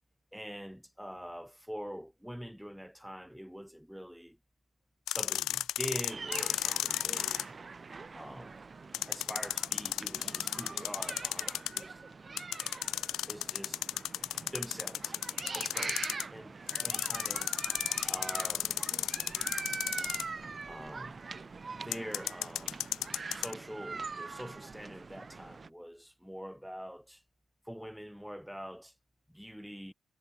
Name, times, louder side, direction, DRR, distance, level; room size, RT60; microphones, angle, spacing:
voice 1, 0.3-4.4 5.1-7.5 8.1-8.6 9.1-12.0 13.3-13.8 14.2-15.2 15.5-17.5 18.1-18.8 20.7-21.2 21.7-22.8 23.3-27.2 27.6-28.9 29.3-29.9, equal, ahead, 5.1 m, -44 dB
sound 1, 5.1-7.4 8.9-11.8 12.4-16.2 16.7-20.4 21.9-23.5, left 13 dB, 80° left, 1.1 m, -33 dB
sound 2, 6.1-25.7, right 4 dB, 30° right, 0.6 m, -43 dB
cardioid pair, 90°, 0 cm